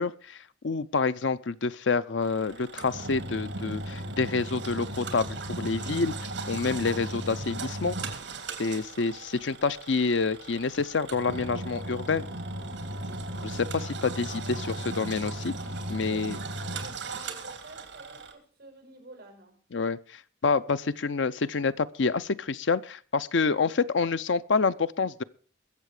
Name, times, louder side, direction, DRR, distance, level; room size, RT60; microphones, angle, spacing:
voice 1, 0.0-8.0 8.6-12.3 13.4-15.5 15.9-16.4 19.7-25.2, left 4 dB, 80° left, 0.6 m, -28 dB
Engine, 2.2-18.3, right 2 dB, 70° right, 3.0 m, -37 dB
voice 2, 15.6-19.6, right 2 dB, 50° right, 5.7 m, -50 dB
22.0 x 7.6 x 4.9 m
head